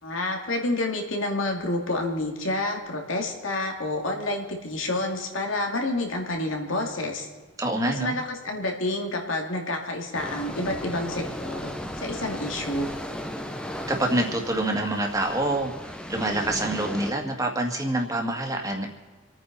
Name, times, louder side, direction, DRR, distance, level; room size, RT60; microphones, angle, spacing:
voice 1, 0.0-7.3 7.8-11.7 12.0-12.9, left 2 dB, 80° left, 2 dB, 2.6 m, -29 dB
voice 2, 7.6-8.2 13.9-18.9, right 1 dB, 15° right, 2 dB, 2.1 m, -26 dB
sound 1, 10.1-17.1, equal, 5° left, 0.9 m, -35 dB
28.5 x 9.5 x 4.3 m, 1.4 s
head